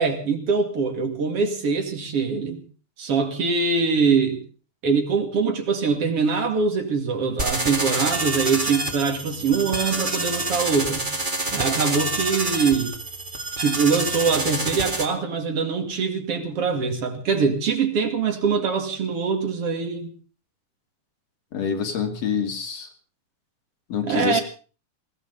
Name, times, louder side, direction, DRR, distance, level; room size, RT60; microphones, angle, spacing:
voice 1, 0.0-2.6 3.0-4.4 4.8-11.1 11.5-12.9 13.6-20.1 24.0-24.4, right 5 dB, 50° right, 5 dB, 3.1 m, -23 dB
sound 1, 7.4-15.0, right 2 dB, 15° right, 2.1 m, -27 dB
voice 2, 21.5-22.9 23.9-24.4, left 7 dB, 55° left, 4 dB, 3.5 m, -26 dB
20.5 x 17.5 x 4.0 m, 0.38 s
omnidirectional pair, 3.6 m